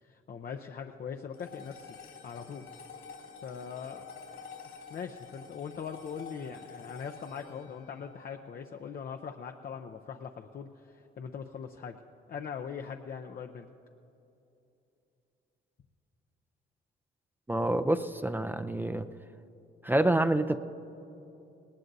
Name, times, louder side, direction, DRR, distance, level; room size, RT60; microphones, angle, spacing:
voice 1, 0.0-2.0 2.2-2.6 3.4-4.4 4.9-12.0 12.3-13.7, left 6 dB, 45° left, 4 dB, 0.6 m, -41 dB
sound 1, 1.3-9.8, left 5 dB, 80° left, 3.2 m, -50 dB
voice 2, 17.5-19.1 19.8-20.6, right 1 dB, 10° right, 9 dB, 0.4 m, -27 dB
19.0 x 19.0 x 2.7 m, 2.8 s
cardioid pair, 90°, 20 cm